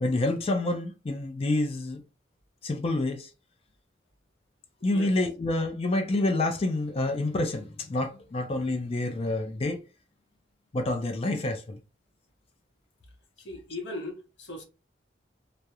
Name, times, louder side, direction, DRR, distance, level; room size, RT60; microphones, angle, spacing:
voice 1, 0.0-2.0 2.6-3.3 4.8-9.8 10.7-11.8, left 2 dB, 35° left, 0.4 m, -28 dB
voice 2, 13.4-14.6, left 1 dB, 70° left, 0.8 m, -38 dB
2.3 x 2.0 x 2.8 m
head